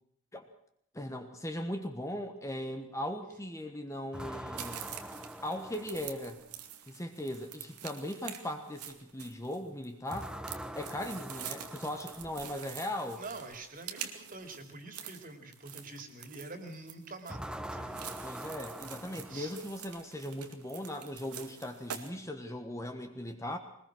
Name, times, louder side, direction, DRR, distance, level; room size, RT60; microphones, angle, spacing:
voice 1, 0.9-4.9 5.4-6.4 6.9-10.3 10.7-13.2 18.2-23.6, left 1 dB, 15° left, 5 dB, 1.3 m, -38 dB
sound 1, 4.1-6.5 10.1-12.6 17.3-19.9, right 1 dB, 5° right, 0.7 m, -44 dB
sound 2, 4.6-22.1, right 9 dB, 90° right, 2.2 m, -46 dB
voice 2, 13.1-18.0 19.3-19.5, right 3 dB, 40° right, 7 dB, 3.0 m, -46 dB
22.5 x 20.0 x 6.3 m, 0.72 s
head